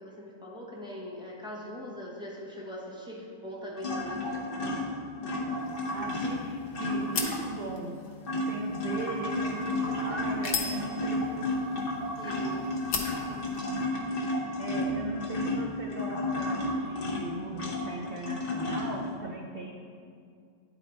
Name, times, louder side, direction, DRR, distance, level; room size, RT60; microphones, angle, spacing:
voice 1, 0.0-4.8 9.7-10.3 12.2-12.6, left 1 dB, 5° right, -4 dB, 0.7 m, -42 dB
sound 1, 3.8-7.7 8.0-19.1, left 1 dB, 45° left, 0.9 m, -32 dB
sound 2, 5.6-13.9, left 5 dB, 80° left, 1.3 m, -40 dB
voice 2, 5.9-8.0 8.3-11.5 13.3-13.4 14.6-19.7, right 3 dB, 85° right, 1 dB, 0.5 m, -39 dB
9.8 x 4.2 x 4.3 m, 2.3 s
omnidirectional pair, 1.7 m